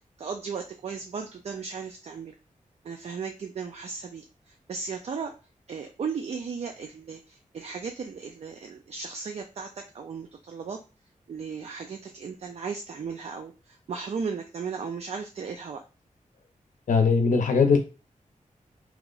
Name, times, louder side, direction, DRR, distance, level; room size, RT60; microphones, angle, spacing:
voice 1, 0.2-2.4 2.8-5.3 5.7-10.8 11.3-15.8, right 5 dB, 55° right, 4 dB, 0.4 m, -36 dB
voice 2, 16.9-17.8, left 5 dB, 75° left, 6 dB, 0.6 m, -20 dB
2.9 x 2.1 x 3.8 m, 0.32 s
wide cardioid pair, 145°, 13 cm